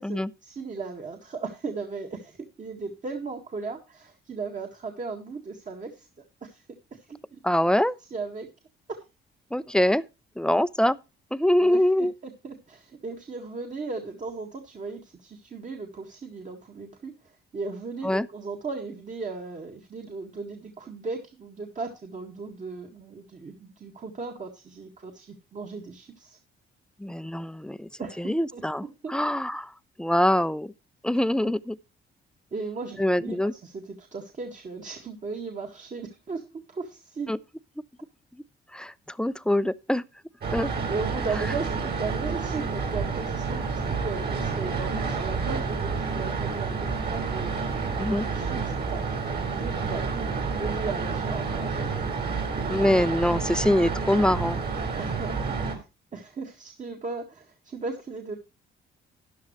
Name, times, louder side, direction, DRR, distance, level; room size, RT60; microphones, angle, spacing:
voice 1, 0.0-6.1 6.4-6.6 7.0-7.4 8.1-8.5 8.9-9.0 11.6-26.4 28.0-29.2 31.4-31.5 32.5-37.3 40.9-52.2 55.0-55.8 56.1-58.4, right 4 dB, 40° right, 1.9 m, -37 dB
voice 2, 7.4-8.0 9.5-10.0 10.4-11.0 11.3-12.1 18.0-18.3 27.0-27.9 28.2-29.7 30.0-30.7 31.0-31.8 33.0-33.5 37.3-37.4 38.7-40.0 40.5-40.7 48.0-48.3 52.7-54.6, left 1 dB, 5° left, 0.5 m, -24 dB
sound 1, 40.4-55.7, right 4 dB, 55° right, 4.4 m, -29 dB
13.0 x 10.0 x 3.1 m
cardioid pair, 90°, 20 cm